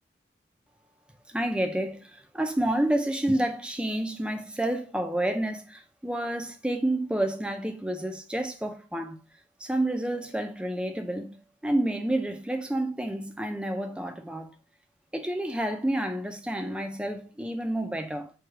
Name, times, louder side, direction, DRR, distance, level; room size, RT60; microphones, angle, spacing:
voice 1, 1.3-9.2 9.6-11.4 11.6-14.5 15.1-18.3, right 1 dB, 5° right, 0.5 m, -29 dB
4.7 x 2.3 x 4.5 m
head